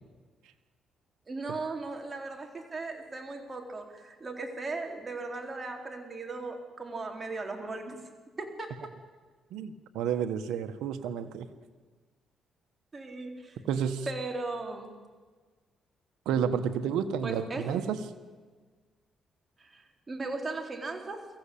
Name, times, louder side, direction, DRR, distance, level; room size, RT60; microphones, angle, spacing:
voice 1, 1.3-8.0 8.4-8.9 12.9-13.6 14.1-14.9 17.2-17.7 19.6-21.3, right 3 dB, 30° right, 3 dB, 3.9 m, -37 dB
voice 2, 9.5-11.5 13.7-14.1 16.2-18.0, right 8 dB, 90° right, 7 dB, 1.3 m, -30 dB
24.0 x 15.0 x 8.6 m, 1.4 s
cardioid pair, 90°, 0 cm